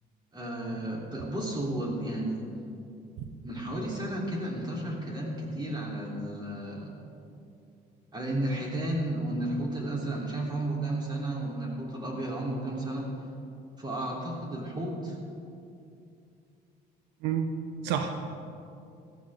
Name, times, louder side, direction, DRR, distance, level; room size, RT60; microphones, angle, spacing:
voice 1, 0.3-2.5 3.4-6.9 8.1-13.1 13.8-15.2, right 1 dB, 25° right, -2 dB, 3.8 m, -33 dB
voice 2, 17.2-18.1, right 7 dB, 90° right, 6 dB, 1.0 m, -29 dB
18.5 x 14.0 x 3.8 m, 2.5 s
cardioid pair, 110°, 17 cm